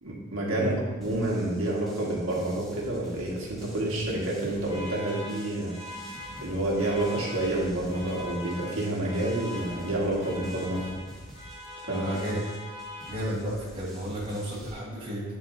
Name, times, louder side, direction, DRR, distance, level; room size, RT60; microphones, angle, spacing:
voice 1, 0.0-5.7 6.4-10.9 11.9-12.2, right 1 dB, 85° right, -4 dB, 1.7 m, -29 dB
sound 1, 1.0-14.7, equal, ahead, 1.2 m, -48 dB
Alarm, 4.2-13.6, left 1 dB, 55° left, 2.1 m, -43 dB
voice 2, 11.9-12.4 13.1-15.3, equal, 25° right, -10 dB, 1.3 m, -32 dB
9.5 x 4.5 x 2.7 m, 1.3 s
head